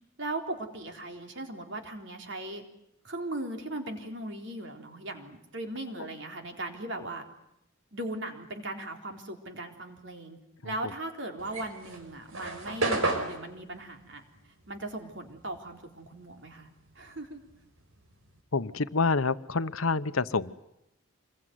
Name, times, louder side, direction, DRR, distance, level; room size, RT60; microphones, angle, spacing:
voice 1, 0.2-2.6 3.0-7.2 7.9-10.4 10.6-14.2 14.7-16.7 17.0-17.4, right 1 dB, 55° right, 4 dB, 3.9 m, -38 dB
sound 1, 11.4-16.1 16.4-18.4, right 2 dB, 80° right, 4.9 m, -33 dB
voice 2, 18.5-20.5, left 4 dB, 85° left, 14 dB, 1.0 m, -27 dB
27.0 x 22.0 x 9.5 m, 0.84 s
head